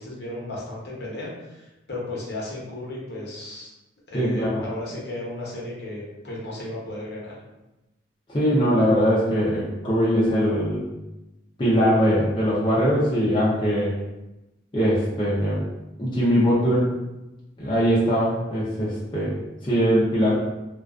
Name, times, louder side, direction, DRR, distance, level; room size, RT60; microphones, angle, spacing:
voice 1, 0.0-3.7 4.1-7.4, left 1 dB, 60° left, -5 dB, 0.8 m, -34 dB
voice 2, 4.1-4.6 8.3-10.8 11.6-13.9 14.7-15.6 16.0-16.9 17.6-19.3 19.6-20.3, equal, 25° left, -8 dB, 0.5 m, -21 dB
2.3 x 2.3 x 2.3 m, 0.98 s
head